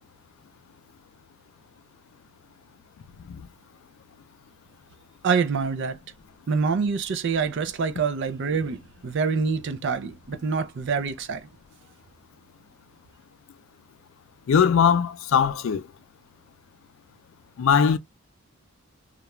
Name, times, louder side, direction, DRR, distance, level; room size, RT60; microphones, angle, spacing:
voice 1, 5.2-6.0 6.5-11.5, right 5 dB, 55° right, 0.4 m, -26 dB
voice 2, 14.5-15.8 17.6-18.0, left 7 dB, 65° left, 0.3 m, -20 dB
2.4 x 2.1 x 2.9 m
head